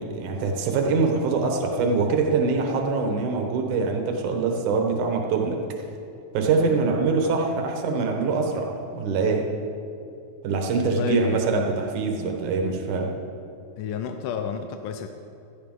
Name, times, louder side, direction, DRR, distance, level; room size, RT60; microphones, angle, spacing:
voice 1, 0.0-5.6 6.3-9.5 10.4-13.1, right 4 dB, 75° right, 2 dB, 2.6 m, -24 dB
voice 2, 6.7-7.3 10.8-11.5 13.8-15.1, left 7 dB, 85° left, 6 dB, 2.2 m, -31 dB
16.5 x 13.0 x 3.8 m, 2.6 s
omnidirectional pair, 3.6 m